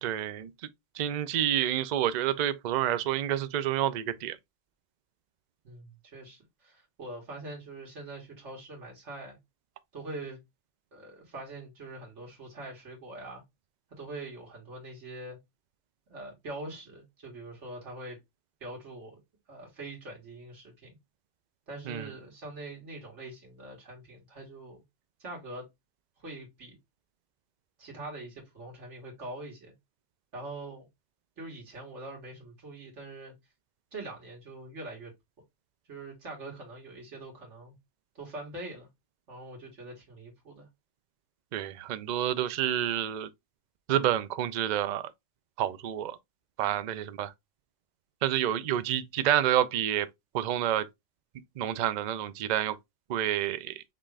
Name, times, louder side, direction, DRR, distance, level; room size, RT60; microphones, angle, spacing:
voice 1, 0.0-0.5 0.9-4.4 21.9-22.1 41.5-43.3 43.9-45.1 45.6-46.2 46.6-47.3 48.2-50.1 50.3-50.9 51.6-52.8 53.1-53.8, right 11 dB, 60° right, 0.5 m, -28 dB
voice 2, 5.6-9.4 9.9-10.4 10.9-13.4 13.9-15.4 16.1-18.2 18.6-19.2 19.5-21.0 21.7-24.8 25.2-25.7 26.2-26.8 27.8-29.7 30.3-30.9 31.4-33.3 33.9-35.1 35.9-37.8 38.2-38.9 39.3-40.7, right 2 dB, 80° right, 2.0 m, -43 dB
5.7 x 2.5 x 3.3 m
omnidirectional pair, 1.2 m